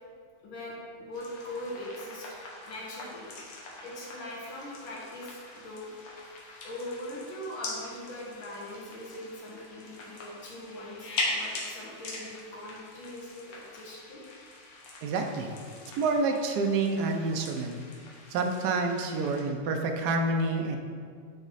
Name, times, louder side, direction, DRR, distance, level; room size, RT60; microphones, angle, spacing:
voice 1, 0.4-2.3 2.7-3.4 3.8-5.9 6.6-14.2, left 1 dB, 70° left, -4 dB, 2.0 m, -41 dB
sound 1, 1.1-19.4, left 2 dB, 90° left, 2.0 m, -41 dB
voice 2, 15.0-15.5 16.0-17.8 18.3-20.8, right 3 dB, 75° right, 4 dB, 0.9 m, -28 dB
8.9 x 3.0 x 4.0 m, 2.1 s
omnidirectional pair, 2.3 m